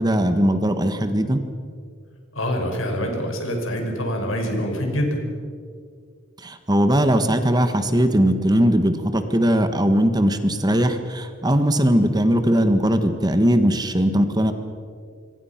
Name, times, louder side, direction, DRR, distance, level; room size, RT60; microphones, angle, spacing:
voice 1, 0.0-1.4 6.4-14.5, equal, 20° right, 8 dB, 1.5 m, -19 dB
voice 2, 2.4-5.2, equal, 85° left, 3 dB, 5.6 m, -25 dB
26.5 x 24.5 x 5.9 m, 2.2 s
head